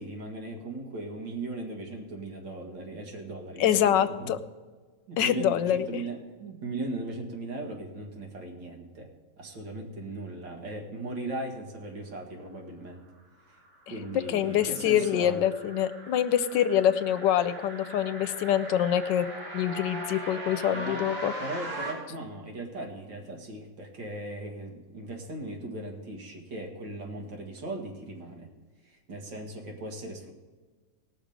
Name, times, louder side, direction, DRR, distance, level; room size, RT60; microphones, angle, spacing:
voice 1, 0.0-4.3 5.1-9.1 9.4-13.0 13.5-13.6 13.9-15.4 20.7-21.1 21.4-28.5 28.9-30.3, right 2 dB, 80° right, 1 dB, 2.4 m, -38 dB
voice 2, 3.6-4.4 5.2-6.0 14.3-19.3 19.5-21.3, left 10 dB, 80° left, 12 dB, 1.3 m, -25 dB
sound 1, 13.6-21.9, right 1 dB, 30° right, 2.8 m, -40 dB
18.5 x 6.3 x 5.1 m, 1.4 s
omnidirectional pair, 2.0 m